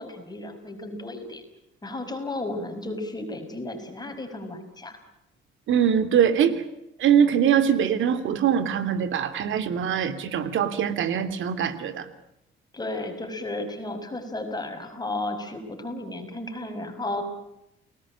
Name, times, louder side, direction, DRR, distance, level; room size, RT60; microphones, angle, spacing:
voice 1, 0.0-1.4 1.8-5.0 12.7-17.2, left 2 dB, 20° left, 6 dB, 6.2 m, -33 dB
voice 2, 5.7-6.5 7.0-12.1, right 8 dB, 75° right, 12 dB, 3.0 m, -22 dB
30.0 x 19.5 x 8.8 m, 0.84 s
cardioid pair, 90°, 20 cm